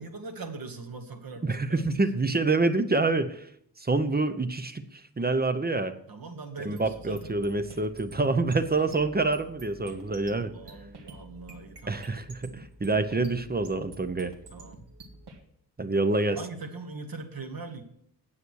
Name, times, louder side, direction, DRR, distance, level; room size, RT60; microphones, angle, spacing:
voice 1, 0.0-2.0 6.1-7.4 10.5-12.0 12.4-12.7 14.5-14.9 16.4-17.8, right 3 dB, 60° right, 4 dB, 1.7 m, -41 dB
voice 2, 1.4-3.4 3.8-4.8 5.2-6.0 6.6-10.5 11.9-14.3 15.8-16.4, right 3 dB, 25° right, 9 dB, 0.8 m, -26 dB
sound 1, 6.8-15.4, right 1 dB, 80° right, 2.0 m, -48 dB
9.7 x 8.2 x 6.3 m, 0.70 s
wide cardioid pair, 110°, 40 cm